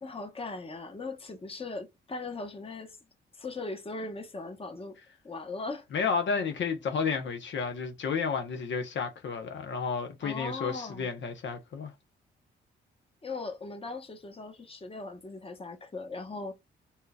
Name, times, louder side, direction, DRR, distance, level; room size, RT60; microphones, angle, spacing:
voice 1, 0.0-3.0 3.4-5.0 5.2-5.9 10.2-11.1 13.2-16.5, left 3 dB, 25° left, 1.1 m, -39 dB
voice 2, 5.9-11.9, left 5 dB, 65° left, 0.9 m, -31 dB
3.6 x 2.8 x 2.3 m
supercardioid pair, 65°, 21 cm